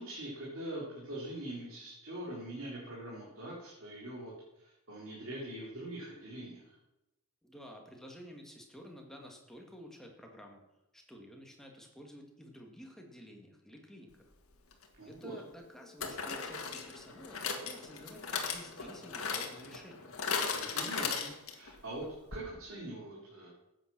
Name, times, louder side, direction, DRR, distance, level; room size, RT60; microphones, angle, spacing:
voice 1, 0.0-6.8 15.0-15.3 20.5-22.1 22.3-23.5, right 1 dB, 60° right, -6 dB, 3.7 m, -43 dB
voice 2, 7.4-10.6 10.9-14.1 15.0-20.1, equal, ahead, 1 dB, 2.2 m, -51 dB
sound 1, 14.7-14.8 16.0-21.7 22.0-22.1 22.3-22.4, left 5 dB, 65° left, 2.0 m, -37 dB
14.5 x 9.0 x 6.2 m, 0.94 s
head